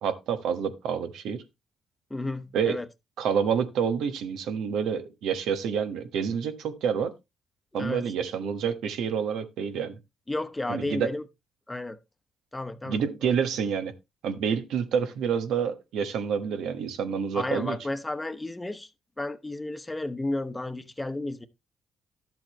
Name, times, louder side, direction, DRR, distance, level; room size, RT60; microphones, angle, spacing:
voice 1, 0.0-1.4 2.5-2.8 3.2-7.1 7.7-10.0 10.7-11.1 12.8-13.9 14.2-17.8, right 7 dB, 80° right, 1.3 m, -28 dB
voice 2, 2.1-2.9 7.7-8.1 10.3-11.2 11.7-12.0 12.5-13.0 17.3-18.9 19.2-21.5, left 2 dB, 15° left, 1.0 m, -32 dB
12.0 x 7.6 x 3.1 m
cardioid pair, 90°, 0 cm